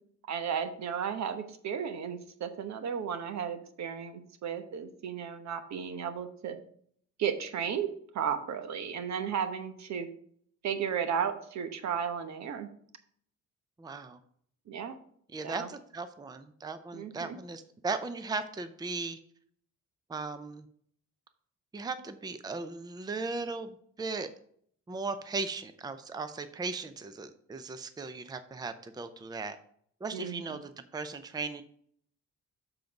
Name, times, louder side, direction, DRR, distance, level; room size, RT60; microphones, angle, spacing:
voice 1, 0.3-6.6 7.2-7.9 8.1-10.1 10.6-12.7 14.7-14.9 15.4-15.7 16.9-17.4 30.1-30.5, right 7 dB, 65° right, 8 dB, 1.0 m, -34 dB
voice 2, 13.8-14.2 15.3-19.2 20.1-20.7 21.7-24.3 24.9-29.6 30.0-31.6, right 3 dB, 15° right, 10 dB, 0.6 m, -37 dB
7.0 x 3.9 x 5.8 m, 0.63 s
cardioid pair, 90°, 30 cm